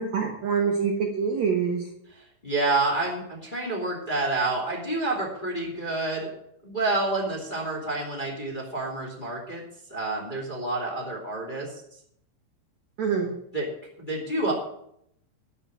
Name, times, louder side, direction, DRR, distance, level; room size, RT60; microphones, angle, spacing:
voice 1, 0.0-1.8 13.0-13.3, right 6 dB, 80° right, 1 dB, 1.5 m, -25 dB
voice 2, 2.1-6.3 6.6-9.6 9.9-11.7 13.5-13.7 14.0-14.5, right 2 dB, 15° left, -2 dB, 1.9 m, -28 dB
11.5 x 7.1 x 8.9 m, 0.73 s
omnidirectional pair, 5.5 m